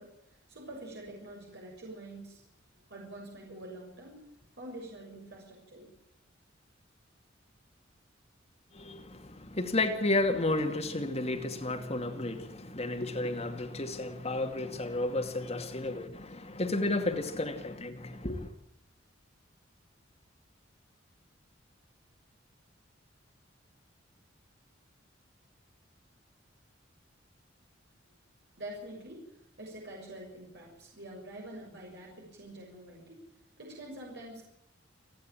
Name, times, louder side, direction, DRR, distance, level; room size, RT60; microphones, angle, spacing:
voice 1, 0.0-2.4 2.9-4.2 4.6-5.9 28.6-33.2 33.6-34.4, right 1 dB, 60° right, 6.7 m, -46 dB
voice 2, 8.7-18.5, left 2 dB, 35° left, 2.3 m, -32 dB
30.0 x 10.5 x 8.9 m
head